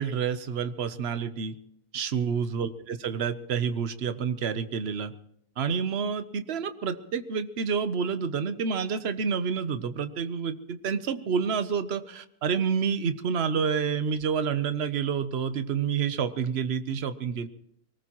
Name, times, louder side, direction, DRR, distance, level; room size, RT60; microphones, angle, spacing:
voice 1, 0.0-1.6 1.9-5.1 5.6-17.5, right 6 dB, 50° right, 11 dB, 1.0 m, -29 dB
24.5 x 19.0 x 3.0 m, 0.71 s
omnidirectional pair, 1.6 m